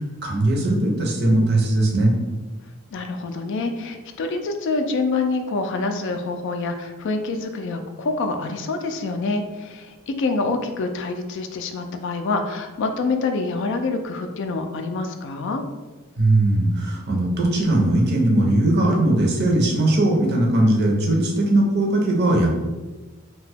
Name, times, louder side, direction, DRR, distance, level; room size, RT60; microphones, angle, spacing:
voice 1, 0.0-2.1 16.2-22.5, right 1 dB, 50° right, 0 dB, 0.6 m, -19 dB
voice 2, 2.9-15.6, left 3 dB, 55° left, 6 dB, 0.3 m, -26 dB
2.8 x 2.2 x 3.3 m, 1.2 s
head